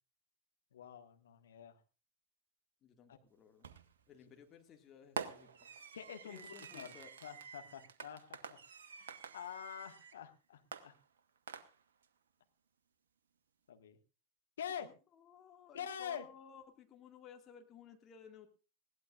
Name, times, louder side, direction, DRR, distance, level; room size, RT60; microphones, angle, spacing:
voice 1, 0.7-1.8 3.1-3.2 5.9-10.9 13.7-14.0 14.6-14.9 15.7-16.3, left 8 dB, 65° left, 6 dB, 1.7 m, -47 dB
voice 2, 2.8-3.7 4.1-5.5 6.2-7.1 14.8-18.5, left 7 dB, 30° left, 4 dB, 2.0 m, -57 dB
Fireworks, 3.6-4.0 5.2-10.2 10.7-12.1, right 6 dB, 65° right, 1.1 m, -48 dB
20.5 x 17.0 x 2.5 m, 0.34 s
figure-of-eight pair, 90°, 0 cm